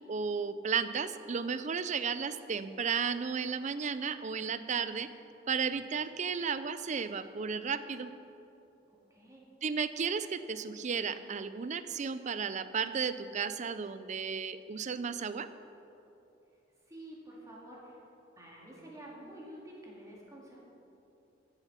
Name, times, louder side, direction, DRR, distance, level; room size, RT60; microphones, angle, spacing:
voice 1, 0.1-5.1 5.5-8.1 9.6-15.5, right 6 dB, 40° right, 13 dB, 0.5 m, -34 dB
voice 2, 8.9-9.4 16.9-18.0 18.4-20.6, right 1 dB, 20° right, -4 dB, 2.4 m, -49 dB
14.0 x 8.1 x 5.7 m, 2.9 s
head